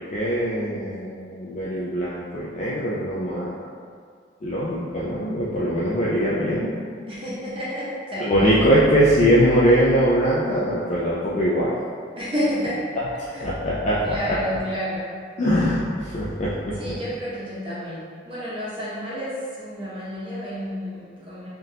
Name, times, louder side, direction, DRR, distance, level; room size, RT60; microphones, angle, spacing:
voice 1, 0.0-3.6 4.4-6.7 8.2-11.7 12.9-14.4 15.4-16.9, equal, 35° left, -7 dB, 0.3 m, -22 dB
voice 2, 7.1-8.6 12.2-12.7 13.3-13.5 14.0-15.1 16.8-21.5, equal, 30° right, -9 dB, 0.7 m, -30 dB
3.5 x 2.5 x 2.7 m, 2.1 s
head